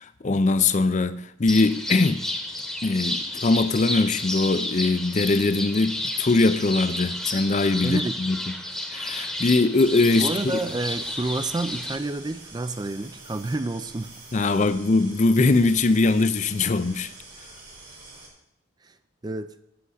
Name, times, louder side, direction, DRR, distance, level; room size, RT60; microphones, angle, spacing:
voice 1, 0.0-2.2 2.8-8.4 8.9-10.3 14.3-17.1, left 3 dB, 35° left, 0.5 m, -21 dB
sound 1, 1.5-12.0, left 1 dB, ahead, 1.0 m, -31 dB
voice 2, 7.8-8.1 10.2-14.2 18.8-19.0 19.2-19.5, right 2 dB, 20° right, 0.4 m, -29 dB
sound 2, 9.8-18.3, right 2 dB, 80° right, 4.2 m, -46 dB
7.8 x 7.4 x 8.0 m
head